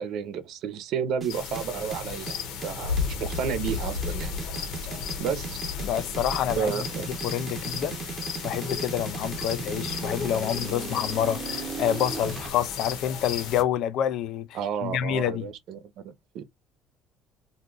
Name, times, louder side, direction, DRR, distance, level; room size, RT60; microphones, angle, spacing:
voice 1, 0.0-4.4 5.2-5.6 6.6-7.1 14.5-16.4, right 7 dB, 65° right, 0.7 m, -31 dB
sound 1, 1.2-12.5, right 5 dB, 30° right, 0.6 m, -37 dB
sound 2, 1.3-13.6, left 6 dB, 85° left, 0.8 m, -34 dB
voice 2, 5.8-6.7 7.2-8.0 8.4-14.5 14.8-15.5, left 10 dB, 65° left, 0.4 m, -27 dB
2.7 x 2.3 x 3.8 m
cardioid pair, 145°, 0 cm